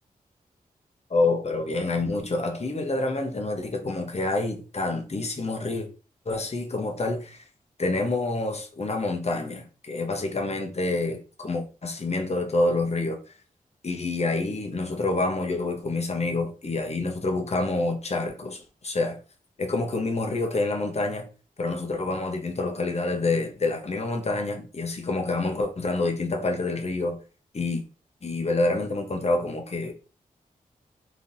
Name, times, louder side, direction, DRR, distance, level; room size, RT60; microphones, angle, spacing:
voice 1, 1.1-5.9 6.3-7.4 7.8-13.3 13.8-19.2 19.6-21.3 21.6-27.2 27.5-27.8 28.2-29.9, left 2 dB, 45° left, 1.0 m, -27 dB
3.5 x 3.0 x 2.6 m
cardioid pair, 45°, 16 cm